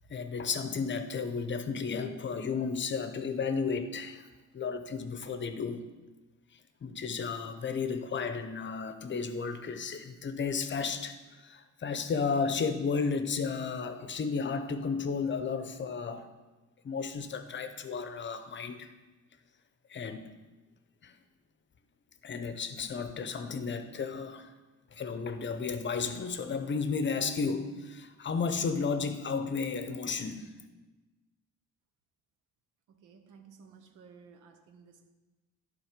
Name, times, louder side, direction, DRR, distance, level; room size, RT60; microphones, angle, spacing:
voice 1, 0.1-4.3 4.5-5.8 6.8-16.3 16.8-18.9 19.9-20.3 21.0-21.1 22.2-24.5 24.9-30.5, left 5 dB, 40° left, 0.7 m, -33 dB
voice 2, 32.9-35.1, right 5 dB, 85° right, 0.9 m, -55 dB
11.0 x 4.1 x 5.1 m
cardioid pair, 90°, 30 cm